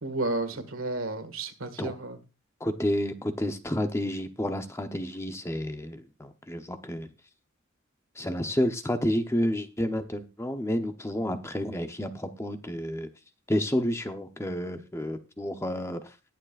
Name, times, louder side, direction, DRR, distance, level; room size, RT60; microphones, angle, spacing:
voice 1, 0.0-2.2, right 2 dB, 85° right, 10 dB, 1.8 m, -32 dB
voice 2, 2.6-7.1 8.2-13.1 13.5-16.0, left 1 dB, 15° left, 7 dB, 0.8 m, -30 dB
20.5 x 7.3 x 2.5 m, 0.29 s
head